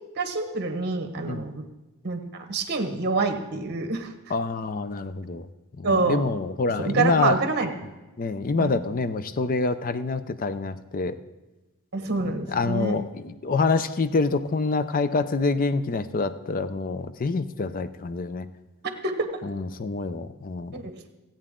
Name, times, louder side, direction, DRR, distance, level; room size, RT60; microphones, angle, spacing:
voice 1, 0.2-1.6 2.0-4.1 5.8-6.2 6.8-7.7 8.6-8.7 11.9-13.0 19.0-19.3 20.7-20.9, right 3 dB, 45° right, 6 dB, 1.2 m, -26 dB
voice 2, 4.3-5.5 5.8-7.4 8.2-11.1 12.5-18.5 19.4-20.8, left 3 dB, 40° left, 13 dB, 0.5 m, -26 dB
16.5 x 8.8 x 3.7 m, 1.1 s
head